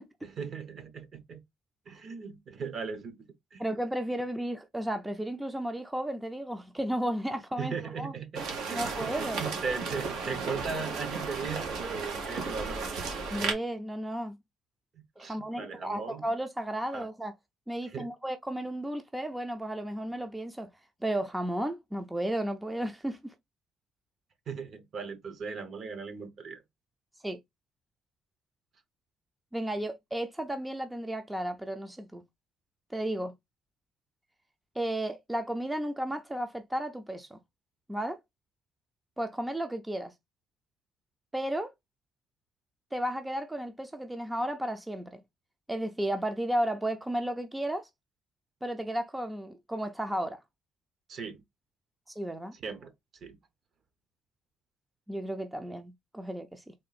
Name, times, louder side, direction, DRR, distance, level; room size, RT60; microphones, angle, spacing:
voice 1, 0.2-1.4 1.9-3.3 3.5-3.6 7.6-12.9 15.2-16.2 16.9-17.1 17.8-18.1 24.5-26.6 51.1-51.4 52.5-52.9 53.2-53.4, right 5 dB, 50° right, 0.9 m, -38 dB
voice 2, 3.6-8.1 8.7-9.4 13.3-14.4 15.2-17.3 17.7-20.7 21.0-23.3 27.2-27.4 29.5-32.2 32.9-33.3 34.8-37.4 37.9-38.2 39.2-40.1 41.3-41.7 42.9-45.2 45.7-47.9 48.6-50.4 52.1-52.5 55.1-56.7, right 1 dB, 10° right, 0.5 m, -33 dB
sound 1, 8.4-13.5, right 4 dB, 90° right, 1.4 m, -34 dB
3.7 x 2.4 x 4.0 m
cardioid pair, 120°, 0 cm